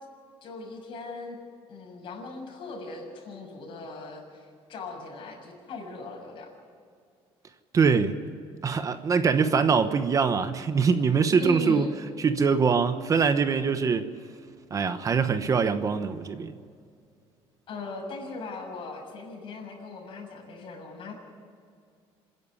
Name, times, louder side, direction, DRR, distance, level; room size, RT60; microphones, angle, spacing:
voice 1, 0.4-1.4 1.7-6.5 11.4-12.0 17.7-21.1, left 3 dB, 55° left, 1 dB, 6.5 m, -39 dB
voice 2, 7.7-8.2 8.6-11.9 12.2-14.1 14.7-16.5, right 5 dB, 35° right, 10 dB, 1.0 m, -23 dB
27.0 x 11.0 x 9.8 m, 2.3 s
cardioid pair, 135°, 10 cm